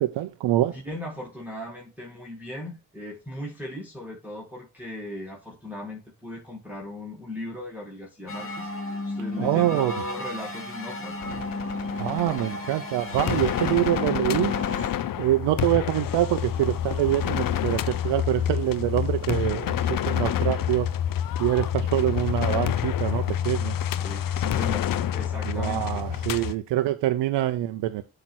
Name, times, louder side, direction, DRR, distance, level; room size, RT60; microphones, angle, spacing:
voice 1, 0.0-0.8 9.4-9.9 12.0-14.5 15.2-20.9 21.4-23.8 25.4-28.0, right 14 dB, 80° right, 0.6 m, -25 dB
voice 2, 0.7-11.2 24.0-26.0, left 1 dB, 5° right, 1.9 m, -38 dB
sound 1, 8.3-14.9, left 1 dB, 30° left, 2.7 m, -34 dB
sound 2, 11.2-26.5, left 10 dB, 55° left, 0.6 m, -28 dB
sound 3, 16.1-16.4 16.6-16.9 17.2-17.5 17.9-18.1 18.5-18.6 18.9-19.6 19.8-20.8, right 6 dB, 40° right, 1.4 m, -45 dB
7.6 x 3.0 x 5.9 m
supercardioid pair, 50°, 42 cm